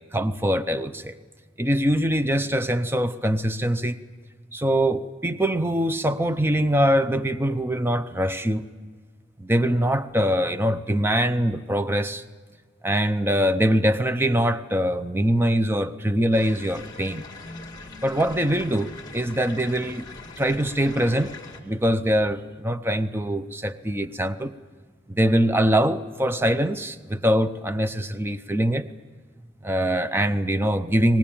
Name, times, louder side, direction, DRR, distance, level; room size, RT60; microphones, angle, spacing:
voice 1, 0.1-1.1 1.6-4.0 4.5-8.6 9.4-12.2 12.8-17.3 18.0-20.1 20.4-21.4 21.6-24.5 25.1-28.9 29.6-31.2, equal, 10° right, 12 dB, 0.6 m, -23 dB
sound 1, 16.3-21.6, left 3 dB, 20° left, 2.2 m, -42 dB
24.0 x 19.5 x 8.8 m, 1.5 s
head